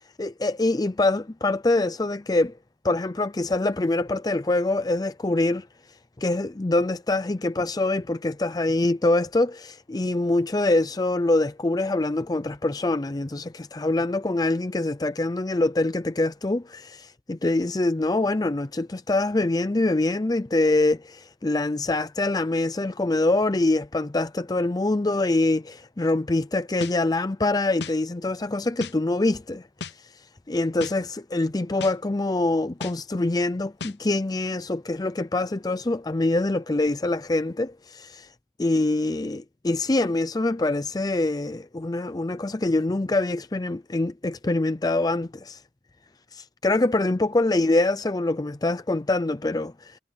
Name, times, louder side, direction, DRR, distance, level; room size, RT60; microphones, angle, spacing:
voice 1, 0.2-2.5 2.8-5.6 6.2-29.6 30.5-38.3 38.6-45.6 46.3-50.0, left 2 dB, 20° left, 0.5 m, -24 dB
fierce lo-fi snare, 26.8-26.9 27.8-27.9 28.8-28.9 29.8-29.9 30.8-30.9 31.8-31.9 32.8-32.9 33.8-33.9, left 5 dB, 75° left, 0.8 m, -34 dB
head